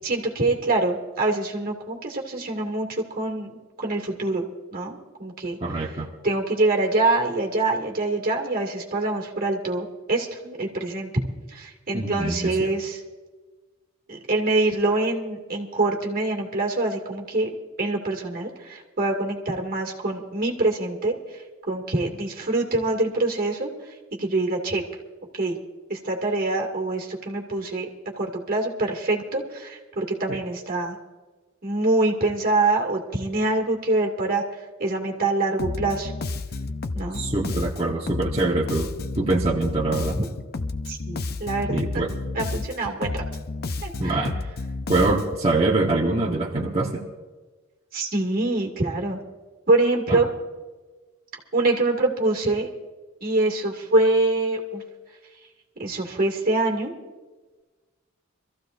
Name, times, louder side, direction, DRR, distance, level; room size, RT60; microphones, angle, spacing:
voice 1, 0.0-4.4 4.7-5.6 6.2-11.1 11.5-13.0 14.1-17.5 17.8-23.9 24.2-24.8 25.3-25.6 25.9-27.9 28.2-31.0 31.6-34.4 34.8-36.1 36.9-37.2 40.2-40.3 40.9-41.8 42.3-43.2 43.8-44.3 47.9-49.2 49.7-50.3 51.5-52.7 53.2-54.8 55.8-56.9, right 2 dB, 45° right, 1 dB, 2.4 m, -25 dB
voice 2, 5.6-6.1 11.9-12.7 30.3-30.4 37.1-38.9 39.2-40.2 41.7-42.1 44.0-44.4 44.9-47.0 50.1-50.2, right 2 dB, 30° right, -3 dB, 1.2 m, -24 dB
Bass guitar, 35.6-45.5, left 3 dB, 45° left, 0.6 m, -31 dB
25.0 x 15.0 x 2.6 m, 1.3 s
head